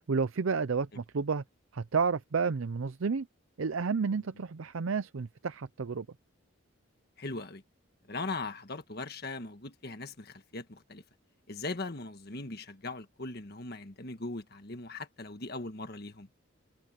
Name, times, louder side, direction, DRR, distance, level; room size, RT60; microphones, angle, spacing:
voice 1, 0.1-1.4 1.7-3.3 3.6-6.1, right 5 dB, 70° right, 0.5 m, -31 dB
voice 2, 7.2-7.6 8.1-11.0 11.5-16.3, left 3 dB, 50° left, 1.6 m, -39 dB
head